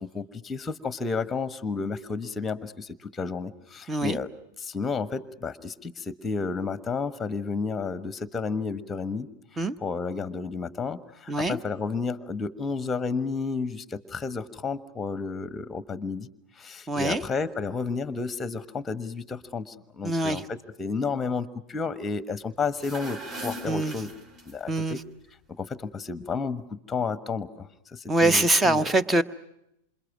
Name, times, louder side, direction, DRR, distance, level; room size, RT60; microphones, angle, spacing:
voice 1, 0.0-4.3 4.6-9.3 9.5-16.3 16.6-24.1 24.4-25.0 25.6-29.0, left 4 dB, 15° left, 14 dB, 1.3 m, -32 dB
voice 2, 11.3-11.6 16.9-17.2 20.0-20.4 23.7-23.9 24.7-25.0 28.1-29.2, right 2 dB, 15° right, 15 dB, 1.1 m, -23 dB
sound 1, 22.7-24.8, right 1 dB, 30° right, 4.6 m, -39 dB
27.5 x 27.0 x 6.2 m, 0.81 s
figure-of-eight pair, 90°, 0 cm